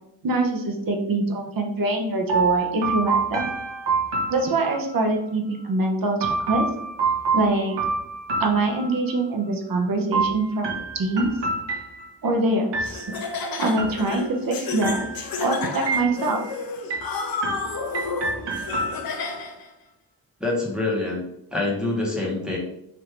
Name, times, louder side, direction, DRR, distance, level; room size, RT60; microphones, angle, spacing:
voice 1, 0.2-3.5 4.3-6.6 7.3-7.7 8.4-11.3 12.2-13.1 13.6-15.1 15.4-16.4 17.3-17.5, right 2 dB, 55° right, 2 dB, 0.7 m, -24 dB
sound 1, 2.3-5.0 6.2-9.2 10.1-12.3 12.7-13.3 13.8-14.4 14.8-15.4 15.9-16.5 16.9-19.4, right 4 dB, 80° right, 1.0 m, -28 dB
Laughter, 12.8-19.7, left 4 dB, 55° left, 0.6 m, -31 dB
voice 2, 20.4-21.2 21.5-22.6, left 2 dB, ahead, -3 dB, 1.0 m, -25 dB
3.4 x 2.6 x 4.4 m, 0.80 s
wide cardioid pair, 175°, 42 cm